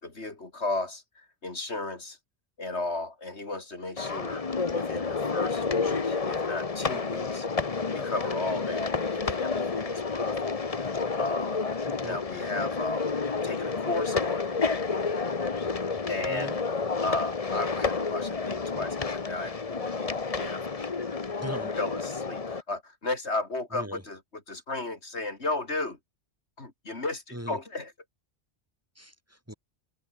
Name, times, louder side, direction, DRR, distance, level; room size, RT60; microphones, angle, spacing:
voice 1, 0.0-2.2 2.6-4.5 4.7-7.5 7.9-11.6 12.0-13.2 13.4-14.6 16.1-20.9 21.8-26.0 26.6-27.9, left 2 dB, 75° left, 3.8 m, -35 dB
sound 1, 4.0-22.6, left 4 dB, 35° left, 1.1 m, -30 dB
voice 2, 11.9-12.2 16.3-16.6 21.4-21.7 23.7-24.0 27.3-27.6 29.0-29.5, equal, 15° right, 4.4 m, -39 dB
omnidirectional pair, 1.1 m